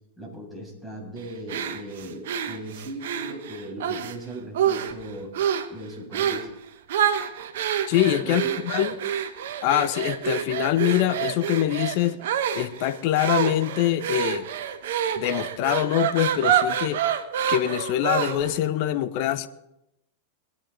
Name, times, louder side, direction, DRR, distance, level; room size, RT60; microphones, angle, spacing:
voice 1, 0.2-5.4 5.7-6.5 8.2-8.6, right 1 dB, ahead, -1 dB, 7.3 m, -38 dB
sound 1, 1.5-4.2 4.5-5.0 5.3-5.7 6.1-6.5 6.9-18.6, right 9 dB, 70° right, 1.3 m, -27 dB
voice 2, 7.9-8.9 9.6-12.2 12.5-14.5 15.2-17.0 17.5-19.5, left 12 dB, 55° left, 11 dB, 1.1 m, -24 dB
23.5 x 10.0 x 4.1 m, 0.87 s
hypercardioid pair, 100°, 0 cm